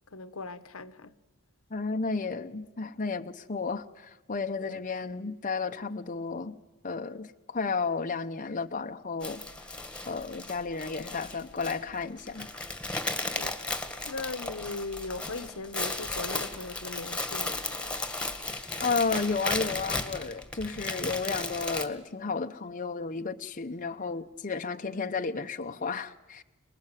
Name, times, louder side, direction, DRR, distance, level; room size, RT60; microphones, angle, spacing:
voice 1, 0.1-1.1 4.6-4.8 13.3-13.6 14.0-17.9, left 3 dB, 80° left, 1.2 m, -39 dB
voice 2, 1.7-6.6 6.8-9.4 10.1-12.5 18.8-26.4, left 4 dB, 40° left, 0.9 m, -32 dB
sound 1, 9.2-21.9, left 2 dB, 5° left, 1.9 m, -35 dB
28.5 x 19.5 x 9.1 m
head